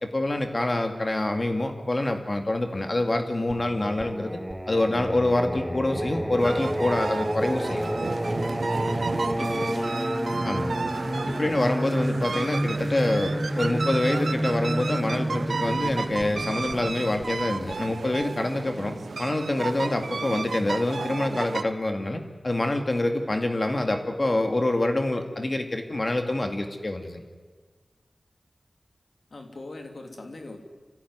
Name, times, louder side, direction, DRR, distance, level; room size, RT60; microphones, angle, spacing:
voice 1, 0.0-4.4 4.7-7.9 9.4-9.5 10.4-10.8 11.3-27.2, left 1 dB, 45° left, 6 dB, 2.3 m, -26 dB
Singing, 3.5-18.2, right 1 dB, 10° right, 1.7 m, -30 dB
sound 1, 6.4-21.6, right 4 dB, 85° right, 0.8 m, -33 dB
voice 2, 9.4-10.1 29.3-30.6, left 2 dB, 70° left, 4 dB, 3.0 m, -40 dB
26.0 x 15.0 x 9.6 m, 1.5 s
cardioid pair, 40°, 0 cm